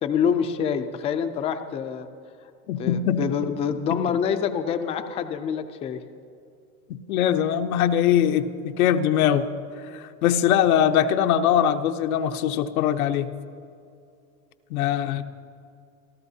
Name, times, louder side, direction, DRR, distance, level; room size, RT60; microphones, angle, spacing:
voice 1, 0.0-2.1 2.8-6.0 15.2-15.3, left 7 dB, 15° left, 8 dB, 0.3 m, -26 dB
voice 2, 2.7-3.5 3.9-4.2 6.9-9.4 9.9-13.3 14.7-15.2, left 9 dB, 90° left, 7 dB, 0.9 m, -22 dB
28.5 x 13.0 x 2.8 m, 2.5 s
supercardioid pair, 145°, 42 cm